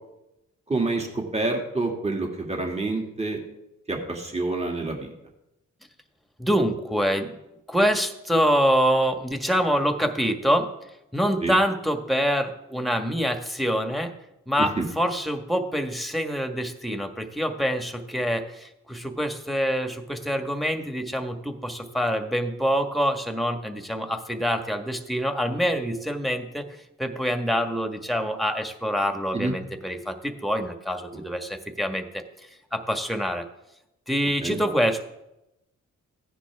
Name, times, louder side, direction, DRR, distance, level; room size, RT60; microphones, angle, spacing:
voice 1, 0.7-3.4 3.9-5.1 11.4-11.5 14.6-14.9 29.3-29.5 31.1-31.2 34.4-34.6, right 3 dB, 20° right, 1 dB, 2.5 m, -27 dB
voice 2, 6.4-7.4 7.7-10.7 11.1-14.1 14.5-32.2 32.7-33.5 34.1-35.0, equal, ahead, 5 dB, 1.7 m, -25 dB
16.0 x 10.0 x 3.6 m, 0.89 s
cardioid pair, 60°, 31 cm